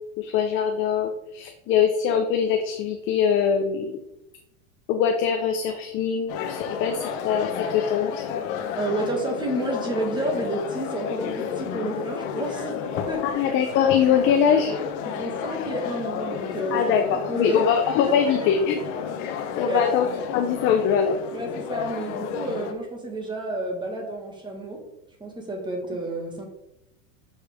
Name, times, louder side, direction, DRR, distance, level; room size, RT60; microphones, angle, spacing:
voice 1, 0.2-4.0 4.9-8.3 13.2-14.8 16.7-18.8 19.2-21.2, left 7 dB, 30° left, 5 dB, 0.5 m, -23 dB
sound 1, 6.3-22.7, left 7 dB, 55° left, 0.9 m, -32 dB
voice 2, 8.7-13.3 15.0-17.7 18.1-18.2 18.4-18.5 19.6-19.9 21.3-24.9 25.2-26.5, right 1 dB, 10° right, 1 dB, 1.5 m, -30 dB
6.4 x 5.5 x 3.4 m, 0.82 s
supercardioid pair, 140°, 40 cm